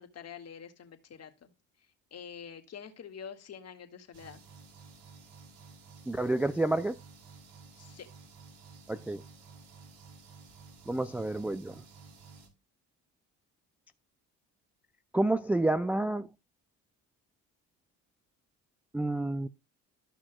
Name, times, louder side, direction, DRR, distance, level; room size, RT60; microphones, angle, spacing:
voice 1, 0.0-1.5 2.1-4.4 7.8-8.1, left 7 dB, 45° left, 2.0 m, -46 dB
sound 1, 4.1-12.5, right 4 dB, 75° right, 2.8 m, -53 dB
voice 2, 6.1-7.0 8.9-9.2 10.9-11.8 15.1-16.3 18.9-19.5, right 2 dB, 5° right, 0.4 m, -29 dB
13.5 x 6.1 x 2.3 m
supercardioid pair, 85°, 37 cm